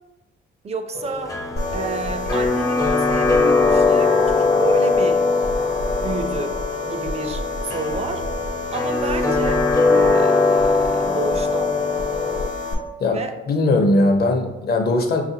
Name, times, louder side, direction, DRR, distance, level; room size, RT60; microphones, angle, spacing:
voice 1, 0.6-1.4 1.7-5.3 6.0-7.5 7.7-8.3 8.7-11.8 13.1-13.4, right 4 dB, 30° right, 6 dB, 0.5 m, -30 dB
sound 1, 0.9-12.5, left 4 dB, 15° left, 0.5 m, -21 dB
sound 2, 1.6-12.7, left 2 dB, 85° left, 0.9 m, -29 dB
voice 2, 13.5-15.2, left 2 dB, 50° left, 3 dB, 0.8 m, -19 dB
5.4 x 2.5 x 2.7 m, 0.98 s
cardioid pair, 90°, 20 cm